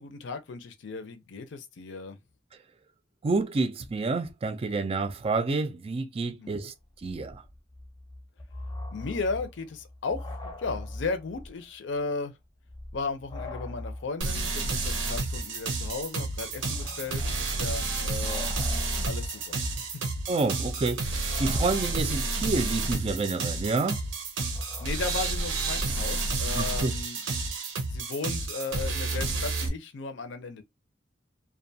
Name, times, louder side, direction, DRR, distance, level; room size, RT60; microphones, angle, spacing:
voice 1, 0.0-2.2 6.4-6.7 8.9-12.4 12.9-18.5 19.1-19.9 24.4-24.5 24.8-27.2 27.9-30.6, left 4 dB, 70° left, 0.5 m, -35 dB
voice 2, 3.2-6.7 7.0-7.4 20.3-21.0 21.4-24.0 26.6-26.9, right 3 dB, 30° right, 0.4 m, -28 dB
sound 1, 6.5-6.6 6.8-11.6 11.9-12.0 12.6-25.2, left 1 dB, 20° left, 0.6 m, -42 dB
sound 2, 14.2-29.7, right 3 dB, 90° right, 0.7 m, -30 dB
2.4 x 2.2 x 2.6 m
head